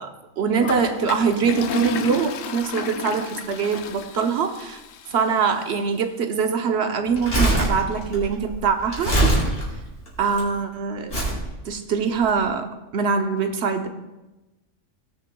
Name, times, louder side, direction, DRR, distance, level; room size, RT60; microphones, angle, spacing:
voice 1, 0.0-4.8 5.1-9.2 10.2-11.1 11.6-13.9, right 6 dB, 60° right, 6 dB, 1.0 m, -23 dB
Toilet flush, 0.6-5.6, left 8 dB, 90° left, 1.0 m, -33 dB
Crumpling crinkling, 7.1-10.4 11.1-11.4 12.2-12.3, right 1 dB, 50° left, 3.3 m, -23 dB
18.0 x 7.0 x 2.2 m, 1.0 s
omnidirectional pair, 1.3 m